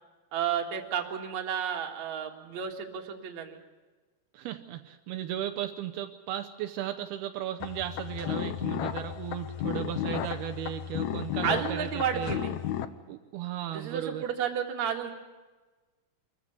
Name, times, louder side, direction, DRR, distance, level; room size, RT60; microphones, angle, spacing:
voice 1, 0.3-3.6 11.4-12.6 13.7-15.1, right 8 dB, 50° right, 2 dB, 2.9 m, -32 dB
voice 2, 4.3-12.3 13.1-14.2, right 11 dB, 80° right, 6 dB, 2.7 m, -35 dB
sound 1, 7.6-12.9, left 11 dB, 80° left, 1.6 m, -33 dB
24.5 x 15.0 x 9.8 m, 1.3 s
omnidirectional pair, 4.5 m